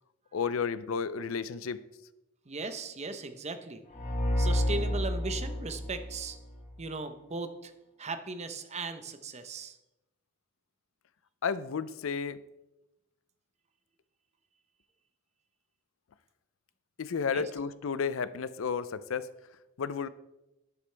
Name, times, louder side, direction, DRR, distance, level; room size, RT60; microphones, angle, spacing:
voice 1, 0.3-1.8 11.4-12.4 17.0-19.3 19.8-20.1, left 6 dB, 75° left, 15 dB, 0.5 m, -32 dB
voice 2, 2.5-3.8 4.4-6.4 6.8-7.7 8.0-9.8 17.3-17.4, right 3 dB, 35° right, 9 dB, 0.8 m, -37 dB
sound 1, 3.9-6.7, left 1 dB, 45° left, 1.8 m, -30 dB
12.0 x 8.2 x 3.4 m, 0.94 s
head